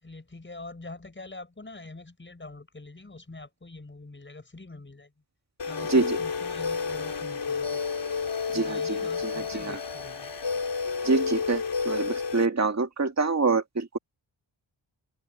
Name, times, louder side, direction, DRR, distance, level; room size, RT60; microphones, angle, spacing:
voice 1, 0.0-5.1 5.7-7.8 8.5-10.4, left 2 dB, 25° left, 6.2 m, -45 dB
sound 1, 5.6-12.5, left 5 dB, 60° left, 3.6 m, -30 dB
voice 2, 8.5-9.8 11.0-14.0, right 4 dB, 35° right, 2.1 m, -26 dB
open air
wide cardioid pair, 140°, 48 cm